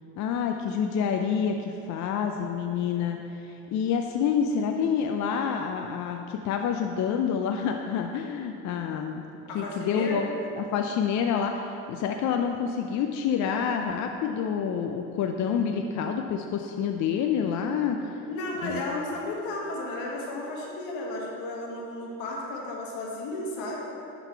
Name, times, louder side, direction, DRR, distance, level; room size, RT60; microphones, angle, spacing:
voice 1, 0.2-9.2 9.5-10.3 10.6-18.0 18.6-18.8, left 7 dB, 55° left, 4 dB, 0.5 m, -28 dB
voice 2, 9.5-10.3 18.2-23.8, left 2 dB, 80° left, -2 dB, 1.6 m, -33 dB
11.0 x 4.0 x 4.6 m, 2.9 s
supercardioid pair, 85°, 34 cm